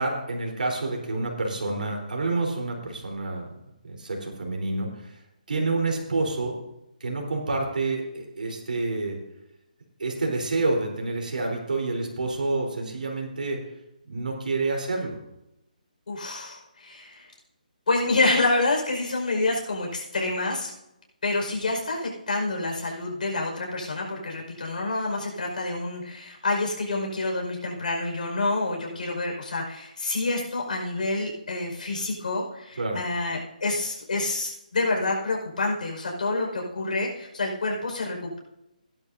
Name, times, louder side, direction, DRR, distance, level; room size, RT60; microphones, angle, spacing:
voice 1, 0.0-3.5 3.8-5.2 5.5-6.5 7.0-9.2 10.0-13.6 14.1-15.2 32.8-33.0, right 3 dB, 75° right, 0 dB, 4.0 m, -28 dB
voice 2, 16.1-17.3 17.9-20.7 21.2-38.4, left 2 dB, 70° left, 0 dB, 5.1 m, -28 dB
17.0 x 11.5 x 2.7 m, 0.89 s
hypercardioid pair, 170°, 5 cm